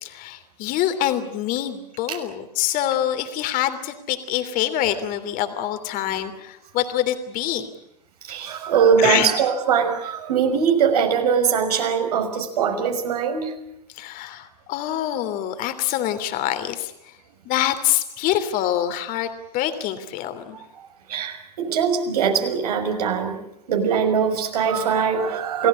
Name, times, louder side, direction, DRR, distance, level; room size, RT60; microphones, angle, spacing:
voice 1, 0.0-7.6 9.0-9.3 14.0-16.9 17.4-19.3 19.5-20.6, left 12 dB, 40° left, 9 dB, 3.1 m, -25 dB
voice 2, 8.2-13.5 20.8-23.4 23.7-25.7, right 7 dB, 70° right, 5 dB, 5.9 m, -21 dB
29.0 x 18.0 x 10.0 m, 0.85 s
hypercardioid pair, 100°, 21 cm